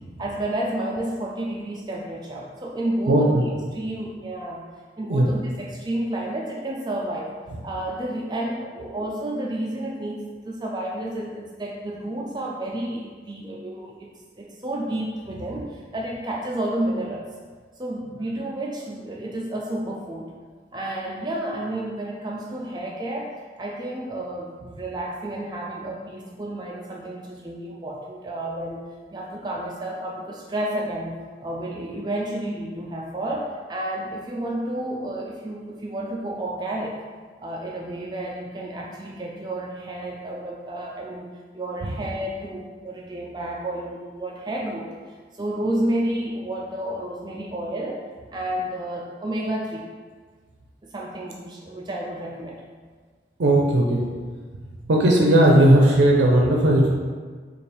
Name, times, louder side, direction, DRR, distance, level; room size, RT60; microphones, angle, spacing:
voice 1, 0.2-3.4 3.7-4.6 5.0-7.3 7.6-17.2 17.8-20.3 20.7-23.3 23.6-28.8 29.1-37.0 37.4-41.3 41.5-44.9 45.4-48.0 48.3-49.9 50.8-52.6, right 1 dB, 25° right, -2 dB, 0.3 m, -31 dB
voice 2, 3.1-3.4 5.1-5.3 53.4-54.0 54.9-56.9, right 1 dB, 80° right, -1 dB, 0.5 m, -16 dB
3.3 x 2.4 x 4.3 m, 1.5 s
head